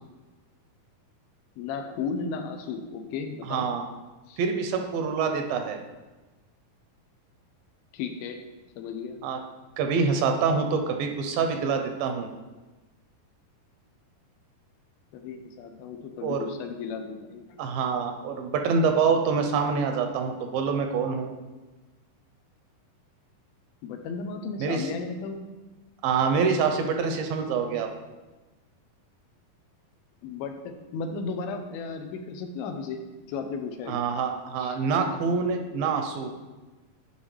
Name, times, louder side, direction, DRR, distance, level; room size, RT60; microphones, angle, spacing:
voice 1, 1.6-3.7 4.3-4.4 7.9-8.4 8.8-9.2 15.1-17.6 23.8-25.4 30.2-33.0 33.3-34.0 34.6-34.8, left 5 dB, 85° left, 5 dB, 2.5 m, -34 dB
voice 2, 3.5-3.9 4.4-5.8 9.2-9.4 9.8-12.3 16.2-16.5 17.6-21.3 24.6-24.9 26.0-27.9 33.9-36.3, right 5 dB, 80° right, 5 dB, 2.3 m, -26 dB
10.0 x 5.4 x 3.2 m, 1.2 s
omnidirectional pair, 4.3 m